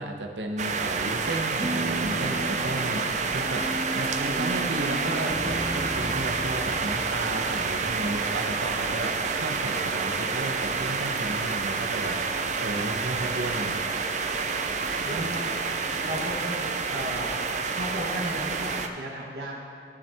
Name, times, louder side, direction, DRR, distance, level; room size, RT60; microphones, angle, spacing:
voice 1, 0.0-13.8 15.0-15.2, right 2 dB, 85° right, 4 dB, 0.9 m, -34 dB
sound 1, 0.6-18.9, right 4 dB, 40° right, 0.5 m, -29 dB
sound 2, 1.6-8.5, right 1 dB, 25° right, 1.4 m, -36 dB
voice 2, 15.1-15.6 16.0-16.6 16.9-17.4 17.7-19.6, equal, 60° right, -3 dB, 1.2 m, -34 dB
15.5 x 5.7 x 3.5 m, 2.6 s
head